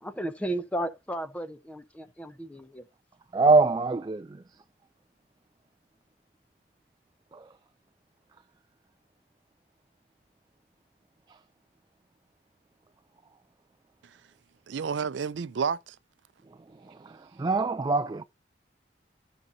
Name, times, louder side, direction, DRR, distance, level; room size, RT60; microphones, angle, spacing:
voice 1, 0.0-2.9, right 1 dB, 10° left, 0.7 m, -34 dB
voice 2, 3.3-4.4 7.3-7.5 11.3-11.4 16.7-18.2, right 3 dB, 25° right, 0.3 m, -25 dB
voice 3, 14.7-16.0, right 6 dB, 85° right, 0.4 m, -30 dB
14.0 x 5.2 x 2.7 m
head